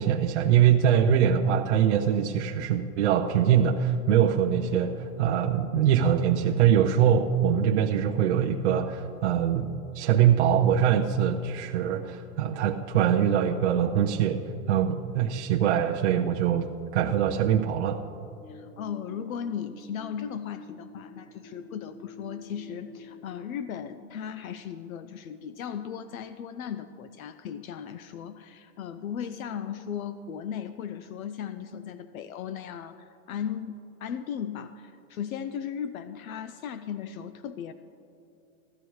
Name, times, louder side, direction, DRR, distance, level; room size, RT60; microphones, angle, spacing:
voice 1, 0.0-14.4 14.7-16.7 16.9-18.0, right 9 dB, 50° right, 0 dB, 0.5 m, -23 dB
sound 1, 18.4-23.5, left 2 dB, 20° left, 1.1 m, -48 dB
voice 2, 18.5-37.7, left 8 dB, 70° left, 12 dB, 0.6 m, -37 dB
16.0 x 12.5 x 3.1 m, 2.7 s
supercardioid pair, 170°, 43 cm